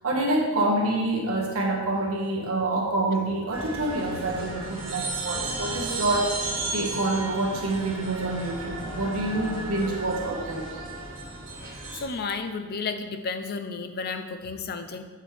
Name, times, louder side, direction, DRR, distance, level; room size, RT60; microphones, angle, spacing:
voice 1, 0.0-6.4 6.7-10.7, right 2 dB, 80° right, -1 dB, 1.4 m, -27 dB
sound 1, 3.5-12.0, right 2 dB, 60° right, 1.8 m, -34 dB
voice 2, 12.0-15.0, left 4 dB, 45° left, 8 dB, 0.5 m, -32 dB
7.5 x 6.4 x 3.4 m, 1.3 s
head